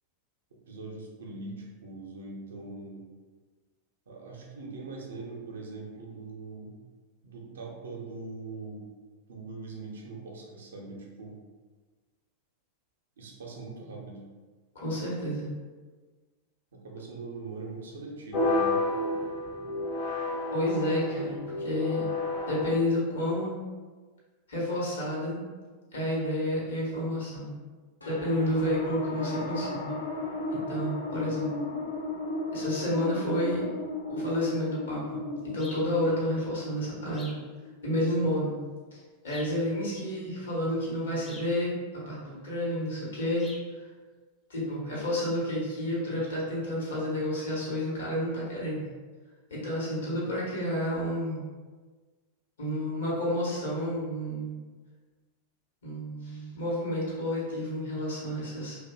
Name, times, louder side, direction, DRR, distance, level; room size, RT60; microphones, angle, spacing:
voice 1, 0.7-3.0 4.1-6.8 7.2-8.8 9.3-11.3 13.2-14.2 16.7-18.8 38.1-38.3 50.0-50.3, right 3 dB, 65° right, -1 dB, 0.5 m, -42 dB
voice 2, 14.8-15.5 20.5-22.1 22.5-23.6 24.5-25.4 25.9-27.5 28.0-29.9 30.5-31.5 32.5-33.6 34.1-37.3 37.8-38.6 38.9-39.0 39.2-43.5 43.8-43.9 44.5-48.9 49.5-51.4 52.6-54.6 55.8-58.8, left 1 dB, 65° left, -6 dB, 0.9 m, -30 dB
sound 1, 18.3-22.7, left 2 dB, 40° left, 0.7 m, -30 dB
sound 2, 28.0-38.7, left 2 dB, 80° left, 0.4 m, -35 dB
sound 3, 35.6-35.9 37.1-37.5 39.3-39.6 41.2-41.6 43.4-43.7, left 2 dB, 20° left, 0.4 m, -47 dB
2.5 x 2.1 x 2.3 m, 1.4 s
figure-of-eight pair, 90°, 0 cm